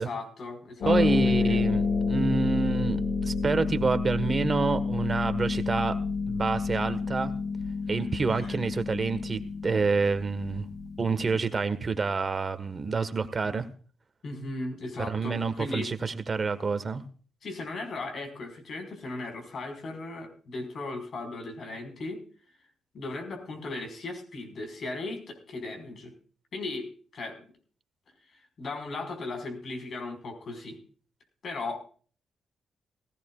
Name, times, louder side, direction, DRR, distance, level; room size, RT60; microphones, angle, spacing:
voice 1, 0.0-1.6 8.3-8.6 14.2-15.9 17.4-22.2 22.9-26.1 26.5-27.4 28.3-30.8 31.4-31.8, left 2 dB, 60° left, 5 dB, 5.0 m, -37 dB
Harp, 0.8-11.4, left 4 dB, 75° left, 7.3 m, -29 dB
voice 2, 0.9-6.0 6.3-7.3 7.9-10.6 11.0-13.7 15.1-17.0, right 4 dB, 35° right, 10 dB, 1.4 m, -28 dB
18.0 x 16.5 x 2.4 m, 0.41 s
cardioid pair, 90°, 0 cm